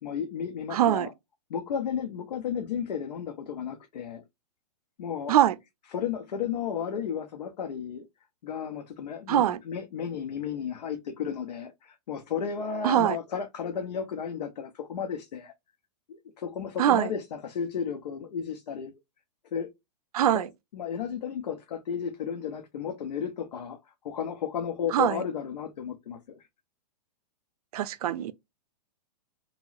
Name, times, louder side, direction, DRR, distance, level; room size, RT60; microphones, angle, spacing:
voice 1, 0.0-1.1 1.5-4.2 5.0-5.3 5.9-8.1 8.4-15.5 16.1-18.9 19.5-19.7 20.3-20.5 20.7-23.8 24.0-26.4, left 7 dB, 85° left, 0.7 m, -33 dB
voice 2, 0.7-1.1 5.3-5.5 9.3-9.6 12.8-13.2 16.8-17.1 20.1-20.5 24.9-25.2 27.7-28.3, right 11 dB, 65° right, 0.5 m, -23 dB
3.0 x 2.9 x 2.3 m
hypercardioid pair, 155°, 21 cm